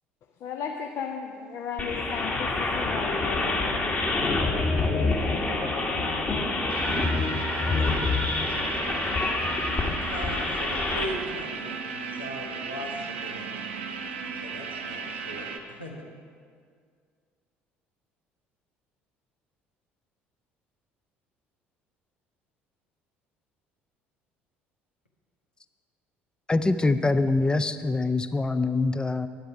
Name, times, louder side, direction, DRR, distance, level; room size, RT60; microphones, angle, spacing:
voice 1, 0.4-4.0, left 6 dB, 50° left, 2 dB, 0.7 m, -35 dB
sound 1, 1.8-11.1, left 3 dB, 30° left, 1.6 m, -27 dB
voice 2, 5.9-6.3 9.8-13.6 14.4-15.5 15.8-15.9, equal, 90° left, -1 dB, 1.2 m, -39 dB
sound 2, 6.7-15.6, right 5 dB, 75° right, 0.7 m, -36 dB
voice 3, 26.5-29.3, left 3 dB, 15° left, 12 dB, 0.5 m, -24 dB
10.5 x 8.2 x 5.9 m, 2.1 s
figure-of-eight pair, 55°, 6 cm